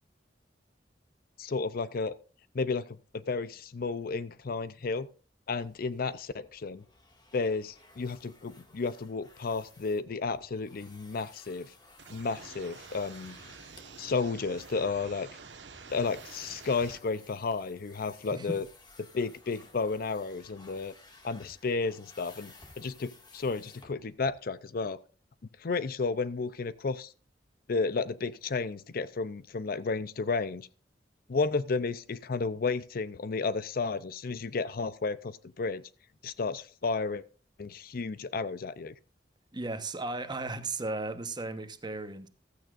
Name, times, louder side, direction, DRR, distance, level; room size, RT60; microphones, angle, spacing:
voice 1, 1.4-2.2 2.5-5.1 5.5-6.8 7.3-11.7 12.1-13.4 14.0-15.3 15.9-18.7 19.1-20.9 21.2-25.0 25.6-27.1 27.7-30.7 31.3-35.8 36.2-37.2 37.6-38.9, left 4 dB, 55° left, 0.5 m, -32 dB
sound 1, 5.6-24.3, left 2 dB, 25° left, 2.0 m, -57 dB
sound 2, 12.0-17.0, right 5 dB, 85° right, 1.3 m, -49 dB
voice 2, 39.5-42.3, right 2 dB, 25° right, 1.1 m, -35 dB
15.5 x 13.5 x 2.5 m
head